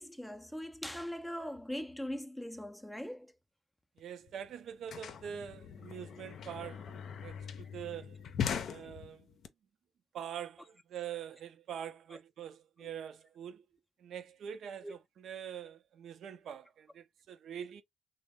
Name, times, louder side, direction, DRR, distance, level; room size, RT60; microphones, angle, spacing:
voice 1, 0.0-3.3 12.1-12.2 12.8-12.9 14.8-14.9, equal, ahead, 0.4 m, -41 dB
sound 1, 4.0-4.1 4.3-9.5, left 7 dB, 65° left, 0.5 m, -40 dB
voice 2, 4.0-8.2 8.7-9.3 10.1-13.6 14.0-17.8, right 9 dB, 70° right, 0.5 m, -44 dB
3.1 x 2.0 x 3.5 m
cardioid pair, 90°, 0 cm